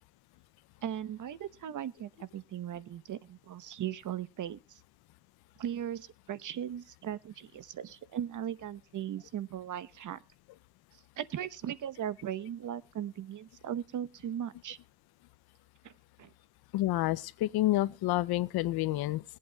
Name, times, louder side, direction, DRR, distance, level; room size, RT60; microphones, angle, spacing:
voice 1, 0.8-4.8 5.6-10.2 10.9-14.8 15.8-15.9 16.2-16.3, right 10 dB, 55° right, 0.9 m, -38 dB
voice 2, 16.7-19.2, left 16 dB, 75° left, 0.7 m, -29 dB
22.0 x 8.6 x 2.3 m
cardioid pair, 95°, 37 cm